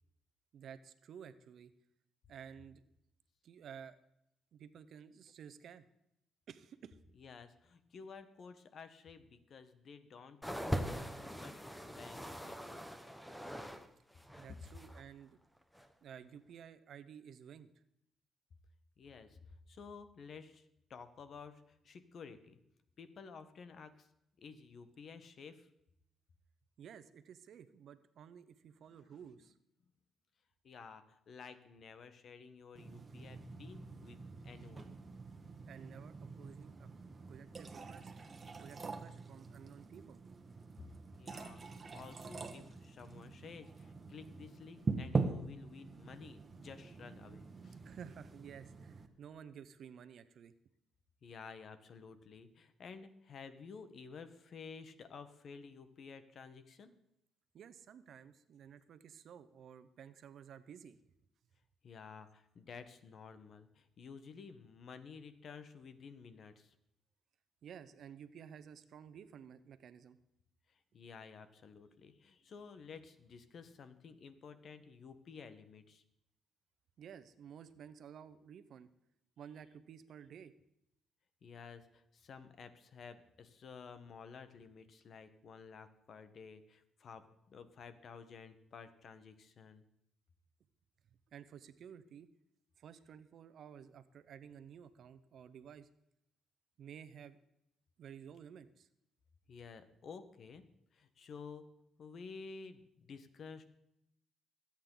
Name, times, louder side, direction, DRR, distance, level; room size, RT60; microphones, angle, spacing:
voice 1, 0.5-1.7 2.3-2.8 3.4-4.0 4.5-5.9 6.5-7.0 14.4-15.4 16.0-17.7 26.8-29.6 35.7-36.9 37.3-38.1 38.6-40.2 47.8-50.5 57.5-61.0 67.6-70.2 77.0-78.9 79.4-80.5 91.3-92.3 92.8-95.9 96.8-97.4 98.0-98.9, right 8 dB, 65° right, 13 dB, 0.8 m, -53 dB
voice 2, 7.2-12.9 19.0-22.6 23.0-24.1 24.4-25.7 28.9-29.2 30.6-35.0 40.8-40.9 41.2-47.8 51.2-56.9 61.8-66.7 70.7-76.0 81.4-89.8 99.5-103.8, left 5 dB, 55° left, 11 dB, 1.3 m, -53 dB
sound 1, 10.4-13.9 14.1-15.0 15.7-15.9, equal, 5° left, 1.2 m, -41 dB
sound 2, 32.8-49.1, right 4 dB, 30° right, 1.4 m, -44 dB
22.5 x 8.8 x 3.9 m, 0.79 s
cardioid pair, 90°, 0 cm